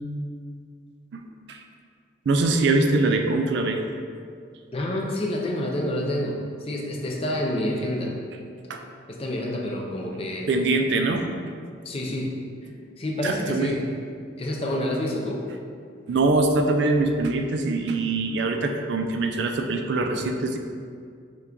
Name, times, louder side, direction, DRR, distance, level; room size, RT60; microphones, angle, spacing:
voice 1, 2.3-3.8 8.7-8.8 10.5-11.3 13.2-13.8 16.1-20.6, right 2 dB, 60° right, 5 dB, 0.3 m, -23 dB
voice 2, 4.7-8.2 9.1-10.5 11.8-12.4 13.0-13.8 14.4-15.4, left 1 dB, 30° left, -1 dB, 0.5 m, -28 dB
5.7 x 2.3 x 3.7 m, 2.2 s
head